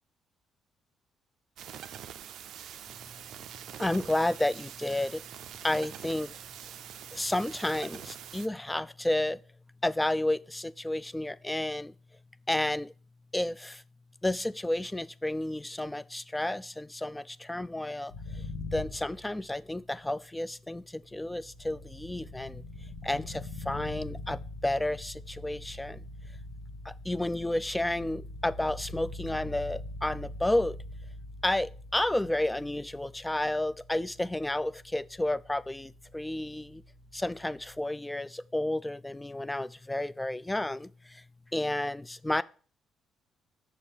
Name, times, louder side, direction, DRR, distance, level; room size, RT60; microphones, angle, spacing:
sound 1, 1.6-8.5, right 9 dB, 65° right, 0.4 m, -45 dB
voice 1, 3.8-5.2 5.6-6.4 7.1-9.4 9.8-11.9 12.5-12.9 13.3-13.8 14.2-18.4 18.7-22.6 23.0-26.1 26.8-30.8 31.4-36.8 37.1-41.2 41.5-42.4, left 1 dB, 10° left, 0.3 m, -31 dB
sound 2, 18.1-19.8 20.9-37.8, left 2 dB, 65° left, 0.9 m, -44 dB
6.4 x 2.8 x 5.3 m
hypercardioid pair, 50°, 0 cm